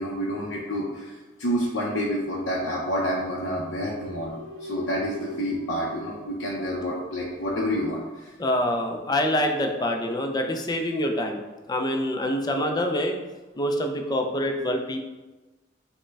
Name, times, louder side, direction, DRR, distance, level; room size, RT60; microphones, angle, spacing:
voice 1, 0.0-8.3, equal, 85° left, -4 dB, 0.6 m, -29 dB
sound 1, 3.2-7.1, left 1 dB, 85° right, 0.6 m, -41 dB
voice 2, 8.4-11.4 11.7-13.2 13.6-15.0, left 1 dB, 20° left, 3 dB, 0.4 m, -25 dB
6.3 x 2.1 x 3.3 m, 1.1 s
head